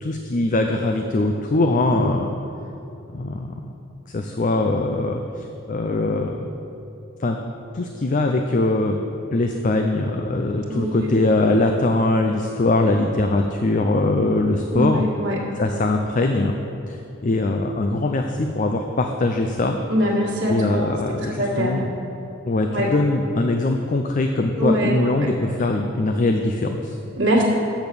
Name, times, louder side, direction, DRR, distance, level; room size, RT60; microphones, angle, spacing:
voice 1, 0.0-2.3 3.1-3.5 4.1-6.4 7.2-7.4 7.7-9.0 9.3-15.0 15.6-16.5 16.9-19.8 20.5-21.9 22.5-27.0, left 2 dB, 40° left, 4 dB, 0.4 m, -22 dB
voice 2, 10.7-11.2 14.7-15.4 19.9-20.9 21.2-21.9 22.7-22.9 24.6-25.3 27.2-27.4, equal, 55° right, -5 dB, 1.7 m, -23 dB
7.9 x 6.9 x 6.9 m, 2.9 s
head